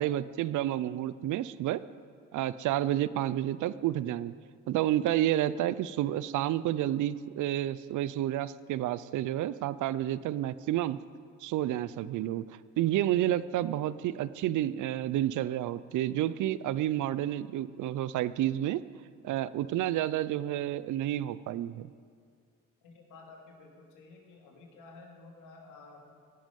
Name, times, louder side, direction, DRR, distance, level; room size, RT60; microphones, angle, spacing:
voice 1, 0.0-1.8 2.3-4.3 4.7-11.0 11.4-12.4 12.8-18.8 19.2-21.9, right 13 dB, 80° right, 17 dB, 0.6 m, -30 dB
voice 2, 22.8-26.2, left 3 dB, 90° left, 0 dB, 2.8 m, -52 dB
16.5 x 11.5 x 5.3 m, 2.1 s
cardioid pair, 90°, 30 cm